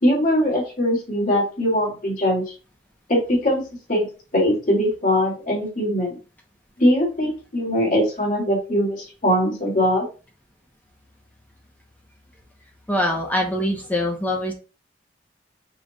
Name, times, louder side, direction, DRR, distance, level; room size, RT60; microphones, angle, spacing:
voice 1, 0.0-2.4 3.1-3.6 3.9-4.1 4.3-6.2 6.8-10.0, equal, 50° left, -3 dB, 1.9 m, -21 dB
voice 2, 12.9-14.5, left 1 dB, 10° left, 0 dB, 0.7 m, -23 dB
4.9 x 2.3 x 3.9 m, 0.34 s
head